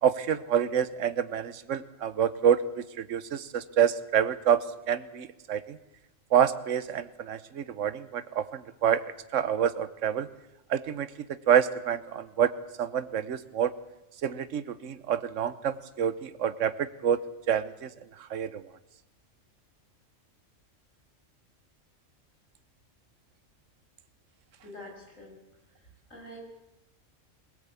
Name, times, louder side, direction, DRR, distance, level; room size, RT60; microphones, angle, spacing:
voice 1, 0.0-5.8 6.3-9.0 9.3-10.3 10.7-11.1 11.5-12.5 12.8-13.7 14.2-16.7 17.0-17.2 17.5-17.9 18.3-18.6, right 8 dB, 70° right, 13 dB, 1.3 m, -27 dB
voice 2, 24.6-25.4 26.1-26.4, left 1 dB, 80° left, 0 dB, 7.2 m, -45 dB
23.5 x 17.5 x 8.4 m, 0.94 s
omnidirectional pair, 1.3 m